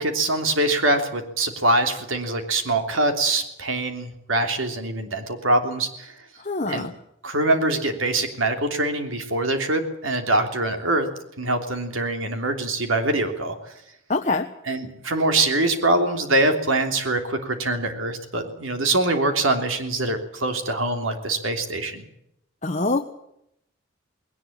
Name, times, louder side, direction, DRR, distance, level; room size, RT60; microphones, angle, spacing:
voice 1, 0.0-6.1 6.7-6.9 7.2-11.1 11.4-13.7 14.7-22.0, right 2 dB, 85° right, 6 dB, 3.2 m, -24 dB
voice 2, 6.4-6.9 14.1-14.5 22.6-23.0, left 3 dB, 35° left, 3 dB, 1.2 m, -24 dB
20.0 x 18.5 x 8.8 m, 0.76 s
head